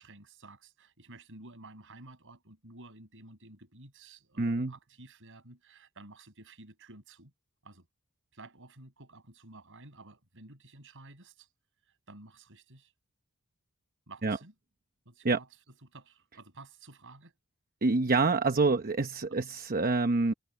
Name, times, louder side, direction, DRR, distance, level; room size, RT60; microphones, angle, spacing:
voice 1, 0.0-7.3 7.6-7.9 8.3-11.5 11.9-12.9 14.1-14.5 15.1-15.5 15.8-17.3 19.3-19.5, right 2 dB, 60° right, 7.0 m, -52 dB
voice 2, 4.4-4.7 14.2-14.4 15.2-15.4 17.8-20.3, right 3 dB, 40° right, 0.9 m, -26 dB
head